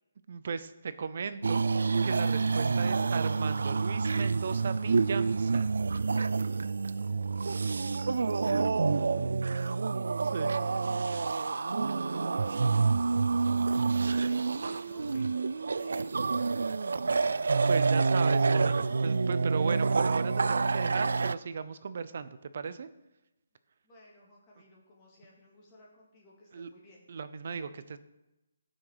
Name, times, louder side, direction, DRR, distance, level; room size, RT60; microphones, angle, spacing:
voice 1, 0.3-1.6 2.0-5.7 10.3-10.7 12.3-12.4 17.7-22.9 26.5-26.7 27.1-28.0, right 6 dB, 45° right, 13 dB, 0.6 m, -36 dB
sound 1, 1.4-21.3, right 4 dB, 80° right, 0.3 m, -28 dB
voice 2, 10.4-11.6 12.0-13.3 13.9-16.2 16.9-17.3 23.8-27.0, left 1 dB, 20° left, -3 dB, 2.2 m, -58 dB
15.0 x 6.2 x 5.0 m, 0.98 s
hypercardioid pair, 175°, 0 cm